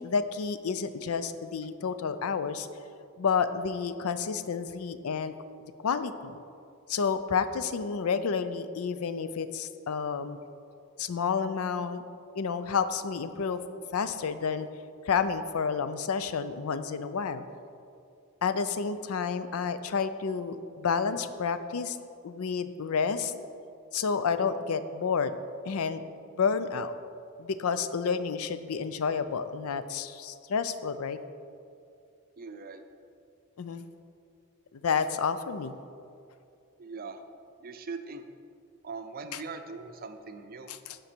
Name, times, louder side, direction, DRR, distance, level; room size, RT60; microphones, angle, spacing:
voice 1, 0.0-2.7 3.2-5.3 5.6-6.4 6.9-10.4 11.0-12.0 12.4-13.6 13.9-14.7 15.0-17.4 18.4-22.0 22.2-23.3 23.9-25.3 25.6-26.0 26.4-27.0 27.4-31.2 33.6-33.8 34.8-35.7 39.3-39.4 40.7-41.0, left 6 dB, 75° left, 12 dB, 0.4 m, -30 dB
voice 2, 32.4-32.8 36.8-37.2 37.6-38.2 38.8-40.7, right 4 dB, 40° right, 7 dB, 0.5 m, -41 dB
11.0 x 5.2 x 4.5 m, 2.5 s
head